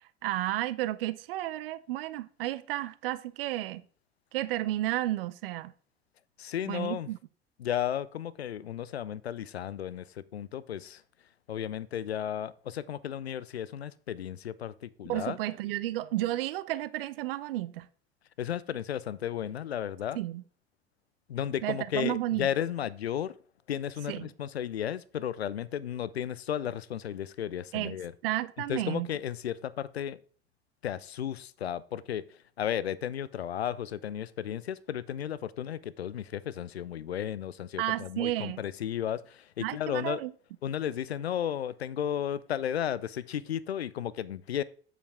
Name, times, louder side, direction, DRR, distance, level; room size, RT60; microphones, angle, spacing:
voice 1, 0.2-3.8 4.3-5.7 6.7-7.2 15.1-17.9 20.1-20.4 21.6-22.5 24.1-24.3 27.7-28.0 28.2-29.1 37.8-38.6 39.6-40.3, right 15 dB, 65° right, 0.7 m, -32 dB
voice 2, 6.4-7.1 7.6-10.0 10.3-11.0 11.5-15.4 18.4-20.2 21.3-23.3 23.7-28.1 28.7-30.2 30.8-32.2 32.6-40.2 40.6-44.6, left 10 dB, 80° left, 0.5 m, -34 dB
8.2 x 7.3 x 3.5 m
figure-of-eight pair, 65°, 31 cm